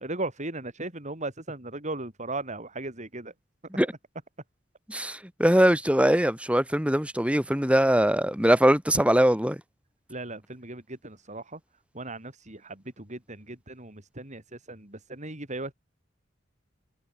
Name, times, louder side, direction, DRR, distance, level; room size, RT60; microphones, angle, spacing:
voice 1, 0.0-3.3 7.6-7.7 10.1-11.6 11.9-15.7, right 2 dB, 40° right, 5.6 m, -37 dB
voice 2, 4.9-9.6, equal, 5° right, 3.8 m, -22 dB
head